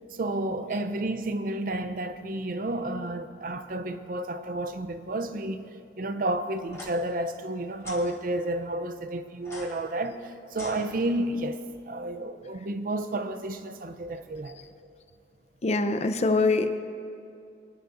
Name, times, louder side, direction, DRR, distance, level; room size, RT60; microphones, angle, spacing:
voice 1, 0.1-5.7 6.0-11.6 11.9-14.6, right 1 dB, 50° right, 0.6 m, -31 dB
sound 1, 6.7-6.9 7.8-8.1 9.4-11.4, left 2 dB, 15° left, 2.0 m, -45 dB
voice 2, 15.6-16.8, left 3 dB, 40° left, 0.6 m, -24 dB
23.5 x 10.5 x 2.6 m
head